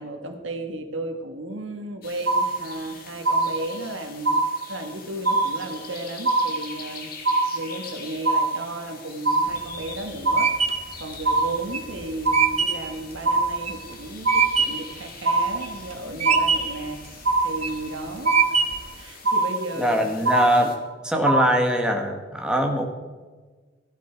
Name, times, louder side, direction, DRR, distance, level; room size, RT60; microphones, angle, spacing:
voice 1, 0.0-4.4 4.7-7.1 7.5-18.4 18.9-20.2, right 1 dB, 85° right, 5 dB, 1.6 m, -34 dB
sound 1, 2.0-20.8, left 5 dB, 50° left, 2.1 m, -43 dB
sound 2, 2.3-2.9 3.3-3.9 4.3-4.9 5.3-5.9 6.3-6.9 7.3-7.9 8.3-8.9 9.3-9.9 10.3-10.9 11.3-11.9 12.3-12.9 13.3-13.9 14.2-14.9 15.2-15.9 16.3-16.9 17.3-17.9 18.3-18.9 19.3-19.9 20.3-20.9 21.3-21.9, right 3 dB, 65° right, 0.9 m, -23 dB
sound 3, 9.5-14.9 15.4-15.9 16.2-16.9 17.4-17.8 18.3-19.0, right 7 dB, 35° right, 1.0 m, -24 dB
voice 2, 19.8-20.8 21.0-22.9, equal, 5° right, 2 dB, 1.6 m, -22 dB
15.0 x 12.0 x 4.6 m, 1.4 s
head